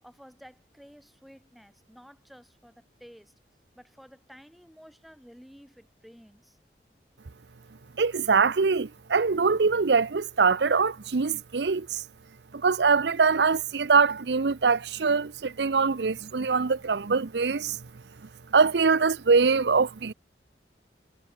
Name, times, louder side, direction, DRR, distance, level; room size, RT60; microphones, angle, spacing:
voice 1, 0.0-3.3 3.7-6.6, equal, ahead, 6.0 m, -52 dB
voice 2, 8.0-12.0 12.5-17.8 18.5-20.1, right 5 dB, 75° right, 0.7 m, -23 dB
head